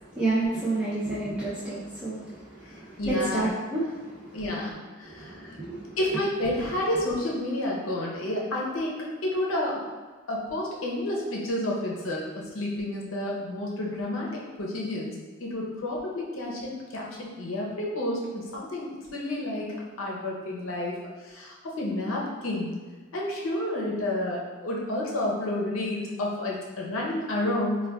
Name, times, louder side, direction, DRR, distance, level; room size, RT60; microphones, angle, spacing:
voice 1, 0.0-4.4 5.0-6.0, right 2 dB, 5° right, -10 dB, 0.4 m, -30 dB
voice 2, 3.0-3.5 4.3-5.6 6.0-9.8 10.3-12.2 12.5-14.3 14.6-21.0 21.2-22.7 23.1-27.8, left 1 dB, 75° left, -3 dB, 0.6 m, -30 dB
4.7 x 2.2 x 2.2 m, 1.4 s
head